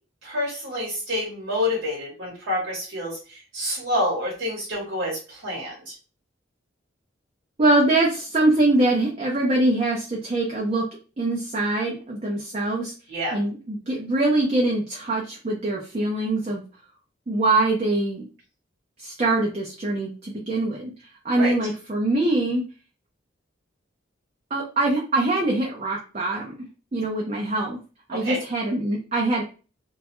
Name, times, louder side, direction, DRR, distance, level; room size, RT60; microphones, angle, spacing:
voice 1, 0.2-5.9 13.1-13.4 21.4-21.5 28.2-28.4, left 1 dB, 75° right, -4 dB, 0.9 m, -28 dB
voice 2, 7.6-10.8 11.2-12.9 13.3-16.6 17.3-18.2 19.0-22.6 24.5-26.5 26.9-27.8 28.1-29.4, right 2 dB, 30° right, -2 dB, 0.4 m, -23 dB
2.2 x 2.0 x 2.9 m, 0.34 s
head